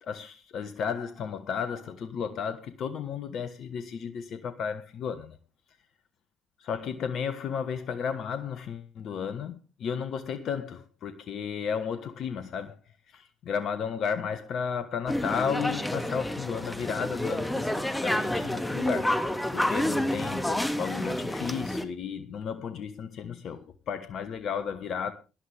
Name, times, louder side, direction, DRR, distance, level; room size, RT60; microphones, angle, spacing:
voice 1, 0.0-5.4 6.6-12.8 13.1-19.2 19.5-25.1, left 7 dB, 60° left, 1.2 m, -33 dB
sound 1, 15.1-21.9, left 1 dB, 10° left, 2.1 m, -29 dB
17.5 x 11.5 x 3.4 m
hypercardioid pair, 50°, 0 cm